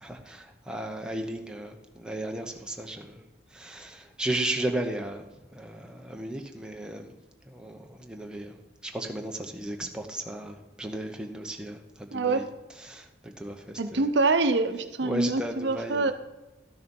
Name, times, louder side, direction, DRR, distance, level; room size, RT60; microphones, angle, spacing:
voice 1, 0.0-3.2 3.5-5.3 5.5-7.1 7.5-8.6 8.8-12.4 12.8-14.1 15.0-16.1, right 1 dB, 5° right, 2 dB, 0.8 m, -35 dB
voice 2, 12.1-12.5 13.8-16.1, right 3 dB, 75° right, 9 dB, 0.8 m, -25 dB
12.5 x 6.6 x 5.4 m, 1.1 s
head